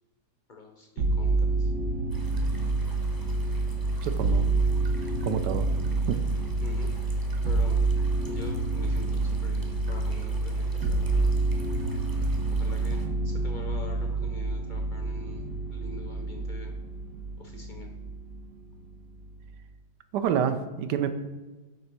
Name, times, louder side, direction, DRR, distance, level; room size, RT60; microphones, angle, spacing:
voice 1, 0.5-1.7 6.6-6.9 7.4-7.8 8.3-11.3 12.5-15.4 15.7-16.7 17.4-17.9, left 3 dB, 65° left, 3 dB, 0.5 m, -45 dB
sound 1, 1.0-18.4 18.7-19.5, right 2 dB, 60° right, 0.8 m, -28 dB
sound 2, 2.1-13.1, right 1 dB, 20° right, 0.6 m, -51 dB
voice 2, 4.0-4.5 5.2-5.7 6.1-6.2 20.1-21.1, right 8 dB, 80° right, 9 dB, 1.2 m, -28 dB
8.0 x 3.0 x 5.9 m, 1.2 s
omnidirectional pair, 1.8 m